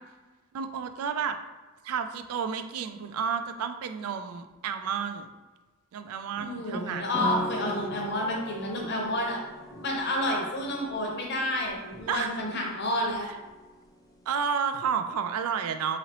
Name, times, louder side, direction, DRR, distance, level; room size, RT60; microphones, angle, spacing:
voice 1, 0.5-1.4 1.8-5.3 5.9-7.2 7.6-8.0 12.1-12.3 13.2-13.4 14.3-16.0, right 7 dB, 80° right, 9 dB, 0.3 m, -31 dB
voice 2, 6.4-9.4 9.7-13.2, left 1 dB, 50° left, 0 dB, 0.7 m, -30 dB
sound 1, 7.1-14.4, equal, 15° left, 0.3 m, -41 dB
3.8 x 3.1 x 2.9 m, 1.2 s
head